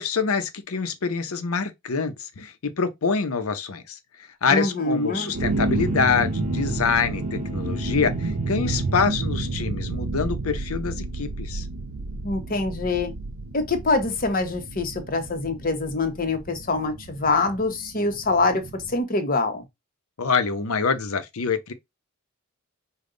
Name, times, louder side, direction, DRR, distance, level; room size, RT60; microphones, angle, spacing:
voice 1, 0.0-4.0 4.4-11.7 20.2-21.7, left 5 dB, 85° left, 0.7 m, -25 dB
voice 2, 4.5-5.3 12.2-13.1 13.5-19.6, left 3 dB, 40° left, 1.0 m, -25 dB
Bowed string instrument, 4.7-9.5, right 2 dB, 35° right, 0.9 m, -41 dB
sound 1, 5.3-19.0, right 2 dB, 85° right, 0.7 m, -30 dB
5.2 x 2.3 x 3.8 m
head